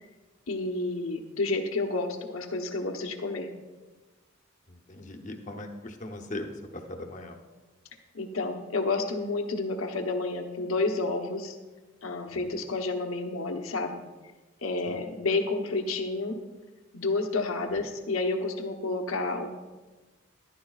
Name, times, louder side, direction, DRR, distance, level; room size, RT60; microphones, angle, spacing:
voice 1, 0.5-3.5 8.1-11.6 12.0-14.0 14.6-16.4 16.9-19.6, left 3 dB, 75° left, 4 dB, 1.0 m, -30 dB
voice 2, 4.7-7.4 12.4-12.6 14.9-15.0 17.7-17.9, left 1 dB, 35° left, 3 dB, 0.8 m, -40 dB
14.0 x 11.5 x 2.4 m, 1.2 s
head